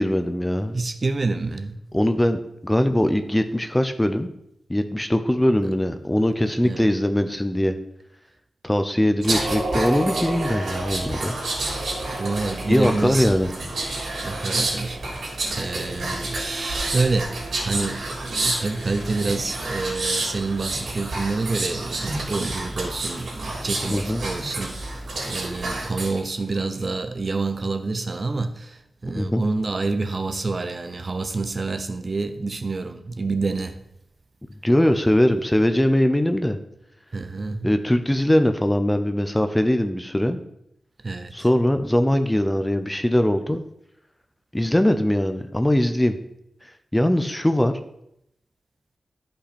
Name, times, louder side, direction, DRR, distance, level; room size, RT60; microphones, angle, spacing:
voice 1, 0.0-0.8 1.9-4.3 4.7-7.8 8.6-11.4 12.7-13.5 23.9-24.2 29.2-29.4 34.6-36.6 37.6-40.4 41.3-43.6 44.5-46.2 46.6-47.8, left 1 dB, 10° left, 0.6 m, -21 dB
voice 2, 0.7-1.8 5.6-5.7 6.6-6.9 12.2-13.4 14.2-15.2 15.6-33.8 37.1-37.7 38.0-38.1 41.0-41.3, right 3 dB, 35° right, 0.7 m, -28 dB
sound 1, 9.2-26.2 26.6-26.8, right 2 dB, 80° right, 3.4 m, -29 dB
13.0 x 5.6 x 4.2 m
wide cardioid pair, 155°, 0 cm